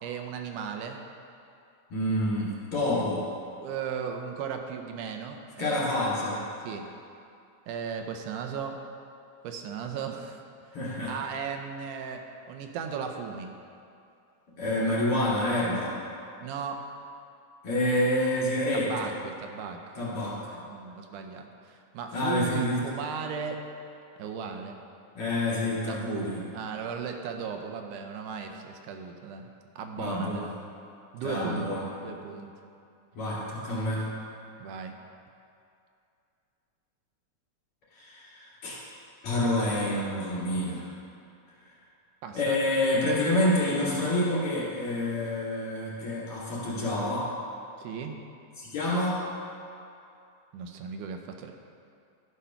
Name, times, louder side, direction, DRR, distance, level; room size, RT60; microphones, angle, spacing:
voice 1, 0.0-1.0 3.6-5.9 6.6-6.9 7.7-8.8 9.4-10.4 11.1-13.5 16.4-16.9 18.7-19.8 20.5-23.6 24.2-24.8 25.9-29.5 29.8-30.6 31.1-32.5 34.6-34.9 42.2-42.6 47.8-48.2 50.5-51.5, right 6 dB, 85° right, 4 dB, 2.2 m, -36 dB
voice 2, 1.9-3.2 5.6-6.4 10.7-11.1 14.6-15.9 17.6-19.1 19.9-20.5 22.1-22.8 25.1-26.5 30.0-30.4 31.2-31.9 33.1-34.1 37.9-38.8 39.2-40.9 42.3-47.3 48.6-49.2, left 1 dB, 50° left, -7 dB, 3.3 m, -28 dB
12.5 x 5.1 x 5.7 m, 2.5 s
omnidirectional pair, 3.6 m